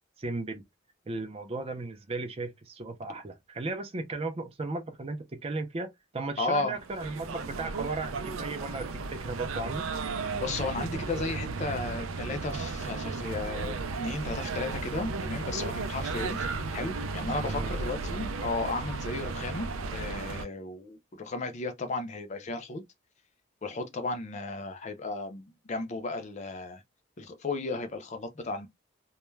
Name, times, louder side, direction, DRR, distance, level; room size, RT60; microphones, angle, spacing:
voice 1, 0.2-0.6 1.1-9.9 17.4-17.7, right 3 dB, 30° right, 0.5 m, -36 dB
voice 2, 6.4-6.8 10.3-16.5 16.7-22.8 23.6-26.8 27.2-28.7, left 3 dB, 35° left, 0.5 m, -34 dB
sound 1, 6.8-20.5, right 3 dB, 85° right, 0.4 m, -34 dB
2.2 x 2.1 x 3.1 m
head